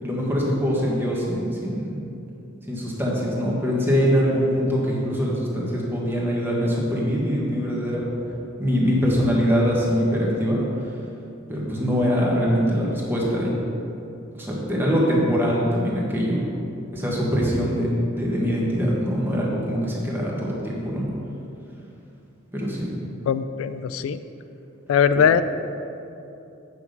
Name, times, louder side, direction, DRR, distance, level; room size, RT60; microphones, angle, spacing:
voice 1, 0.0-2.0 2.7-8.0 8.6-10.6 11.5-13.5 14.4-16.4 16.9-21.0 22.5-22.9, equal, 10° right, -4 dB, 1.5 m, -23 dB
voice 2, 23.3-24.2 24.9-25.4, left 7 dB, 80° left, 12 dB, 0.3 m, -20 dB
8.4 x 5.8 x 5.3 m, 2.8 s
head